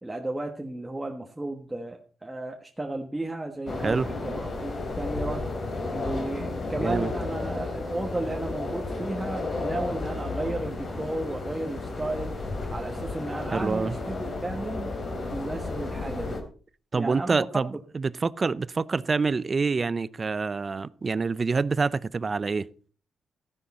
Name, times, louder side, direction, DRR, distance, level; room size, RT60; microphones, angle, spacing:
voice 1, 0.0-5.4 5.9-12.3 12.7-14.9 15.3-16.4 16.9-17.4, right 2 dB, 10° right, 1.3 m, -34 dB
sound 1, 3.7-16.4, left 2 dB, 45° left, 3.2 m, -33 dB
voice 2, 6.8-7.1 13.5-14.0 16.9-22.7, right 4 dB, 30° right, 0.5 m, -26 dB
Motorcycle, 8.4-15.1, left 1 dB, 20° left, 5.7 m, -54 dB
14.5 x 10.0 x 4.2 m
cardioid pair, 110°, 0 cm